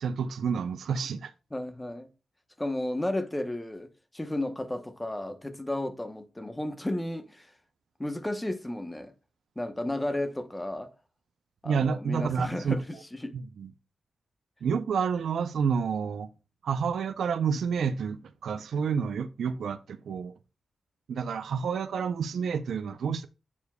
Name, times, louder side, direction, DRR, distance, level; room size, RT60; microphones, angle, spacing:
voice 1, 0.0-1.3 11.6-12.8 13.3-13.7 14.6-16.3 16.6-20.3 21.1-23.3, right 6 dB, 85° right, 0.5 m, -29 dB
voice 2, 1.5-2.1 2.6-3.9 4.1-7.5 8.0-9.1 9.6-10.9 11.6-13.3, left 1 dB, 10° left, 0.9 m, -33 dB
8.1 x 7.2 x 2.3 m
wide cardioid pair, 145°, 0 cm